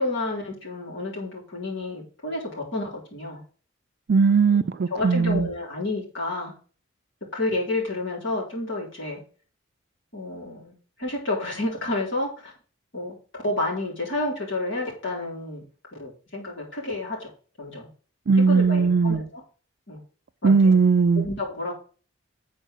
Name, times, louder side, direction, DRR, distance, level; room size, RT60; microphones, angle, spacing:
voice 1, 0.0-3.4 4.5-4.6 4.9-6.5 7.3-9.2 10.1-10.7 11.0-12.5 12.9-15.6 16.0-17.3 17.6-17.9 18.4-19.4 19.9-20.0 20.4-20.8 21.1-21.7, left 2 dB, 60° left, 3.8 m, -30 dB
voice 2, 4.1-5.5 18.3-19.2 20.4-21.3, right 5 dB, 50° right, 0.4 m, -19 dB
7.9 x 4.6 x 6.3 m
head